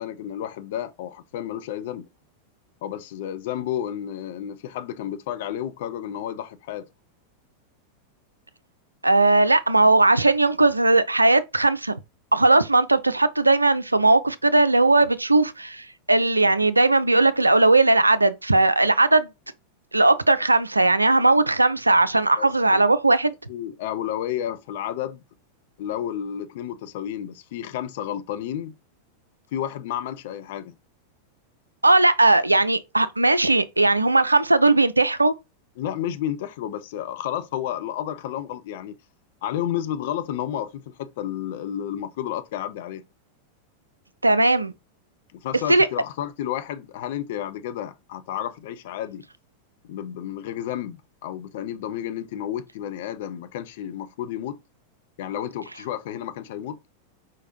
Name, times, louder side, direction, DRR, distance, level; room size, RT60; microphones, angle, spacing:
voice 1, 0.0-2.1 2.8-6.9 22.4-22.8 23.5-25.2 25.8-28.7 29.5-30.7 35.8-39.0 39.4-43.0 45.3-49.2 49.8-54.6 55.2-56.8, left 10 dB, 55° left, 0.5 m, -31 dB
voice 2, 9.0-12.0 12.3-19.3 19.9-23.3 31.8-35.3 44.2-44.7 45.7-45.9, right 2 dB, 85° right, 0.3 m, -18 dB
4.7 x 3.8 x 3.0 m
figure-of-eight pair, 90°, 0 cm